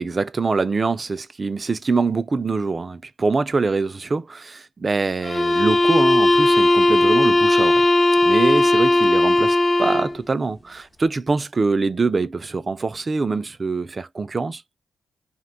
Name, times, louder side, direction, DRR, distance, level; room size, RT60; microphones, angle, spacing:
voice 1, 0.0-7.8 8.2-14.6, right 4 dB, 40° right, 0.3 m, -24 dB
sound 1, 5.2-10.2, left 2 dB, 25° left, 0.6 m, -17 dB
2.6 x 2.2 x 3.7 m
cardioid pair, 55°, 0 cm